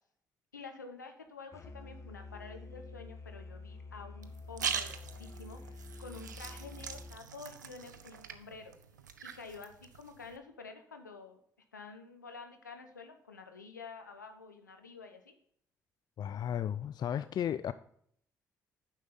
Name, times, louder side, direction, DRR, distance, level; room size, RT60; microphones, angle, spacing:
voice 1, 0.5-5.6 6.0-8.7 9.2-11.4 11.7-15.3, left 4 dB, 90° left, 6 dB, 0.7 m, -49 dB
Musical instrument, 1.5-7.2, left 3 dB, 30° left, 1.2 m, -48 dB
sound 1, 4.2-10.4, right 7 dB, 85° right, 0.4 m, -42 dB
voice 2, 16.2-17.7, left 9 dB, 45° left, 14 dB, 0.3 m, -34 dB
9.5 x 6.3 x 4.0 m, 0.66 s
figure-of-eight pair, 40°, 10 cm